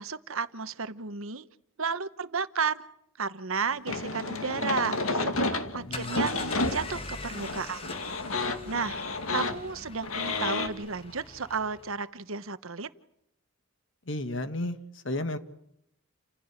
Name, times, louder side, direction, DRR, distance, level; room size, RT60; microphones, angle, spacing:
voice 1, 0.0-1.5 1.8-2.8 3.2-7.9 8.7-9.0 9.3-12.9, right 5 dB, 80° right, 13 dB, 1.1 m, -33 dB
sound 1, 3.9-10.7, left 3 dB, 90° left, 2.2 m, -31 dB
sound 2, 5.6-12.0, left 3 dB, 25° left, 2.0 m, -43 dB
voice 2, 5.8-6.3 14.1-15.4, left 1 dB, 65° left, 10 dB, 1.9 m, -33 dB
30.0 x 16.5 x 9.7 m, 0.78 s
head